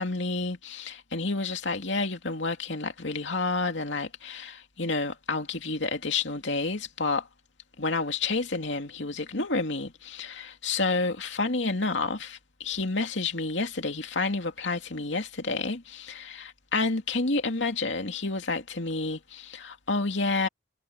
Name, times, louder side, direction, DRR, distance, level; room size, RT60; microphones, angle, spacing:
voice 1, 0.0-7.3 7.8-20.5, left 3 dB, 75° left, 2.7 m, -29 dB
head